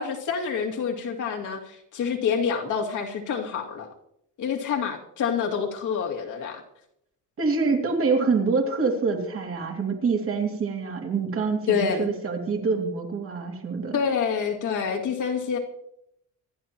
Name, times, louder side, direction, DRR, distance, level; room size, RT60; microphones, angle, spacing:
voice 1, 0.0-3.9 4.4-6.6 11.7-12.1 13.9-15.6, left 6 dB, 60° left, 1 dB, 2.5 m, -27 dB
voice 2, 7.4-14.0, right 4 dB, 40° right, 2 dB, 2.7 m, -26 dB
25.5 x 11.0 x 3.0 m, 0.77 s
cardioid pair, 145°, 33 cm